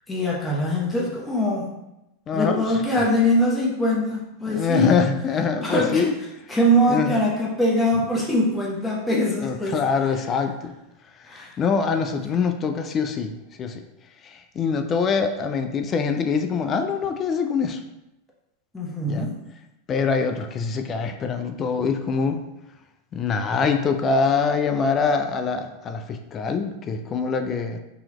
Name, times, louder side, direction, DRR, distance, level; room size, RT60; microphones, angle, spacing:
voice 1, 0.1-1.7 2.3-4.9 5.6-6.0 6.5-9.8 11.3-11.6 18.7-19.4, equal, 10° left, -4 dB, 0.8 m, -22 dB
voice 2, 2.3-2.8 4.5-6.1 6.9-7.2 9.4-10.7 11.2-13.8 14.2-17.8 19.1-19.3 19.9-22.4 23.1-27.8, left 5 dB, 30° left, 7 dB, 0.4 m, -24 dB
3.8 x 2.9 x 2.9 m, 0.91 s
hypercardioid pair, 110°, 0 cm